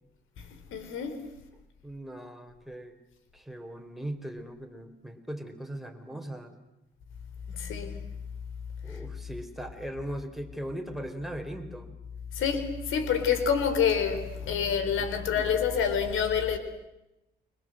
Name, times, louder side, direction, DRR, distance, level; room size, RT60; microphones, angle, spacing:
voice 1, 0.7-1.2 7.5-8.0 8.9-9.0 12.3-16.6, left 7 dB, 85° left, 4.0 m, -27 dB
voice 2, 1.8-3.0 3.3-6.5 8.8-11.9, right 1 dB, ahead, 4.3 m, -39 dB
30.0 x 25.0 x 7.7 m
cardioid pair, 90°, 20 cm